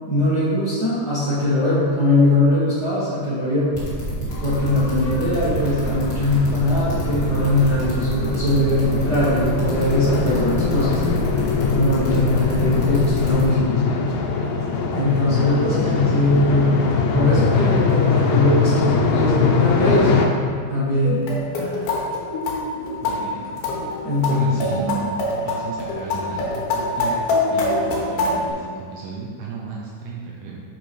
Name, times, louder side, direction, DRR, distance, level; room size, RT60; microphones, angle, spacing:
voice 1, 0.1-3.8 4.4-11.0 11.7-13.8 14.9-16.7 17.1-20.2 20.7-21.2 21.5-22.0 24.0-24.5, left 1 dB, 65° right, -13 dB, 1.0 m, -21 dB
sound 1, 3.7-13.4, right 2 dB, 35° left, 1.3 m, -28 dB
sound 2, 4.3-20.3, left 5 dB, 85° left, 3.1 m, -22 dB
voice 2, 15.6-16.4 23.0-23.8 24.3-25.0 25.5-27.2 27.5-30.6, right 4 dB, 85° right, -3 dB, 2.2 m, -34 dB
sound 3, 21.0-28.5, left 2 dB, 65° left, 2.6 m, -24 dB
8.8 x 7.3 x 3.3 m, 2.1 s
omnidirectional pair, 5.4 m